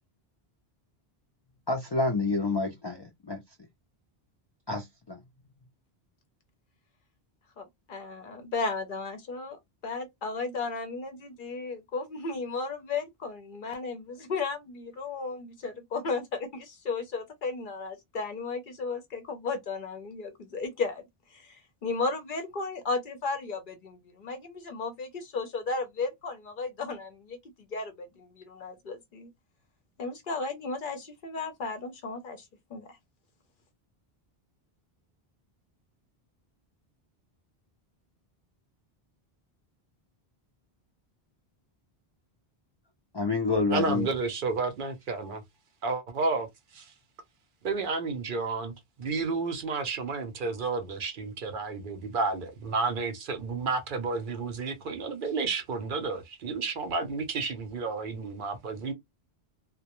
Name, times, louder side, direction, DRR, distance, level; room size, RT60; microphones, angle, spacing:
voice 1, 1.7-3.4 4.7-5.2 43.1-44.1, left 3 dB, 45° left, 0.3 m, -28 dB
voice 2, 7.6-9.6 9.8-27.4 27.7-29.3 30.0-33.0, left 4 dB, 60° left, 0.7 m, -34 dB
voice 3, 43.7-45.4 45.8-46.5 46.7-46.9 47.6-58.9, right 4 dB, 60° right, 0.7 m, -31 dB
2.1 x 2.1 x 2.9 m
omnidirectional pair, 1.0 m